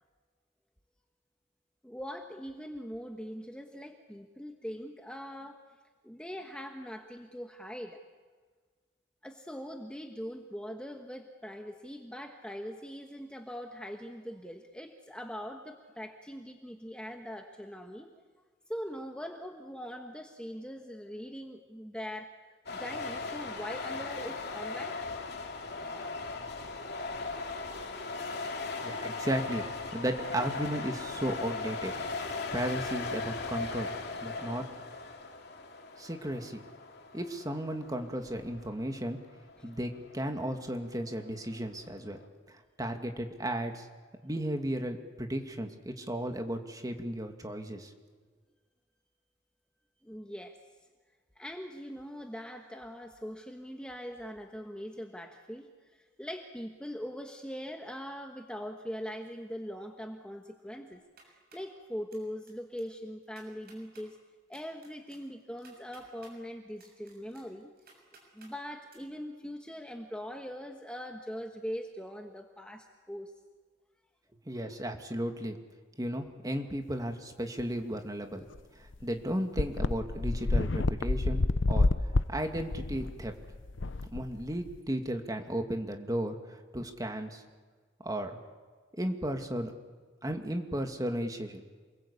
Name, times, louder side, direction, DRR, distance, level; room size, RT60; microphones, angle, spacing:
voice 1, 1.8-5.6 6.0-8.0 9.2-18.1 18.7-22.3 22.7-25.0 50.0-50.6 51.4-55.7 56.0-61.0 61.3-64.2 64.5-67.7 68.3-73.3, equal, 5° left, 3 dB, 1.3 m, -42 dB
sound 1, 22.7-42.3, left 3 dB, 60° left, 3.0 m, -39 dB
voice 2, 28.8-31.9 32.3-33.9 34.2-34.6 36.0-36.6 37.1-39.2 39.6-42.2 42.5-43.9 44.2-47.9 74.5-75.6 76.0-78.4 78.7-81.9 82.3-83.3 84.1-87.4 88.0-88.4 89.0-89.7 90.2-91.6, right 1 dB, 20° right, 5 dB, 2.3 m, -35 dB
sound 2, 60.9-61.7 62.1-62.5 62.8-62.9 63.2-64.1 64.5-66.3 66.8-68.5 68.9-69.0, right 4 dB, 55° right, 7.2 m, -58 dB
sound 3, 78.6-78.7 78.9-79.0 79.6-84.8, left 2 dB, 80° left, 0.8 m, -29 dB
28.5 x 21.5 x 8.5 m, 1.5 s
head